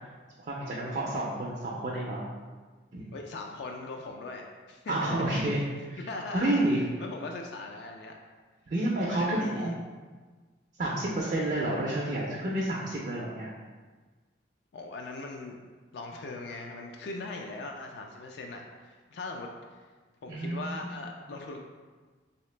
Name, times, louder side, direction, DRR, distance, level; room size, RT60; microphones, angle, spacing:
voice 1, 0.5-2.2 2.9-3.0 4.9-6.0 6.3-6.8 8.7-9.8 10.8-13.5 20.3-20.9, right 1 dB, 40° right, -3 dB, 0.4 m, -30 dB
voice 2, 3.1-5.6 6.1-6.6 7.0-8.2 9.1-9.7 14.7-15.6 15.9-19.8 20.2-21.6, left 3 dB, 60° left, 2 dB, 0.3 m, -40 dB
3.2 x 2.9 x 3.2 m, 1.4 s
head